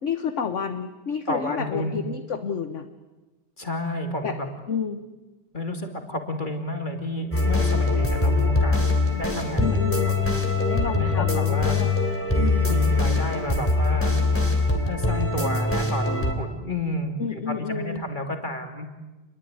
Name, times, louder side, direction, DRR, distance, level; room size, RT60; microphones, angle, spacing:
voice 1, 0.0-2.9 4.2-4.3 4.7-5.0 9.6-10.1 10.6-12.0 12.3-12.7 17.2-18.0, left 6 dB, 45° left, 9 dB, 1.2 m, -30 dB
voice 2, 1.3-2.0 3.6-4.5 5.5-10.3 10.9-11.8 12.7-14.2 14.9-18.9, left 1 dB, 25° left, 4 dB, 2.8 m, -31 dB
sound 1, 7.3-16.3, left 3 dB, 5° left, 3.2 m, -22 dB
28.5 x 21.5 x 9.6 m, 1.2 s
omnidirectional pair, 2.2 m